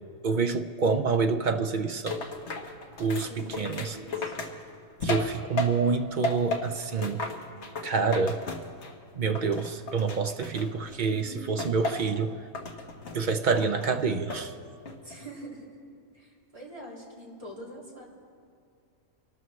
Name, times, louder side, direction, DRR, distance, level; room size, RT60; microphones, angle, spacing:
voice 1, 0.2-2.2 3.0-4.0 5.0-7.2 7.8-8.4 9.1-12.4 13.1-14.5, right 5 dB, 50° right, 7 dB, 0.5 m, -27 dB
sound 1, 2.1-6.0 6.2-9.0 9.3-11.0 11.6-12.2 12.5-13.2 13.6-14.5 14.9-15.3, left 2 dB, 55° left, 1.5 m, -34 dB
voice 2, 3.1-4.3 11.1-11.5 15.0-15.7 16.1-18.0, right 1 dB, 25° right, -6 dB, 3.2 m, -44 dB
26.0 x 13.0 x 3.2 m, 2.4 s
omnidirectional pair, 1.5 m